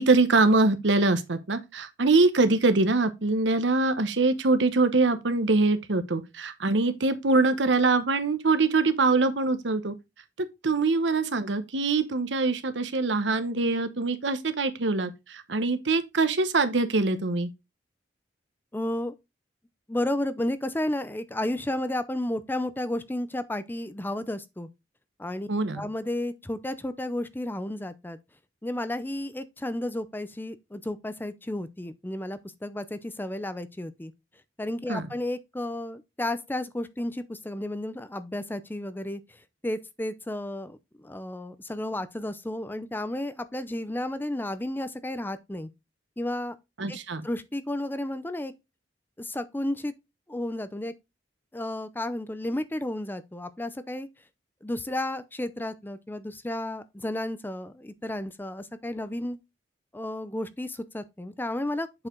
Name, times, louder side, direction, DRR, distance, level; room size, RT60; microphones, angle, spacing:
voice 1, 0.0-9.9 10.4-17.5 25.5-25.8 34.9-35.0 46.8-47.3, right 3 dB, 90° right, 1.0 m, -24 dB
voice 2, 18.7-19.1 19.9-24.7 25.2-25.5 25.7-28.2 28.6-34.1 34.6-39.2 39.6-45.7 46.2-46.5 46.9-47.0 47.2-48.5 49.2-49.9 50.3-50.9 51.5-54.1 54.6-59.4 59.9-62.1, left 1 dB, 10° left, 0.5 m, -32 dB
7.6 x 4.7 x 3.8 m
head